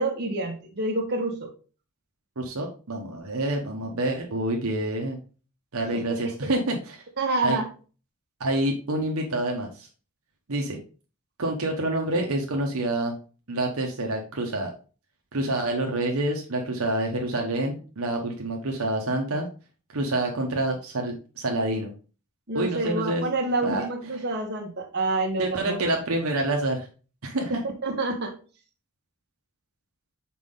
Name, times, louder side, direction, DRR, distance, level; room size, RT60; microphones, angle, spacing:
voice 1, 0.0-1.5 5.9-6.6 7.2-7.7 22.5-26.0 27.5-28.3, right 2 dB, 50° right, 1 dB, 1.4 m, -28 dB
voice 2, 2.4-5.2 5.7-7.0 7.4-7.6 8.4-9.9 10.5-10.8 11.4-13.2 13.5-14.7 15.3-19.5 19.9-21.9 22.5-23.3 23.6-23.9 24.1-24.2 25.4-26.9 27.2-27.6, right 1 dB, 75° right, 1 dB, 1.0 m, -27 dB
5.9 x 4.3 x 3.8 m, 0.36 s
head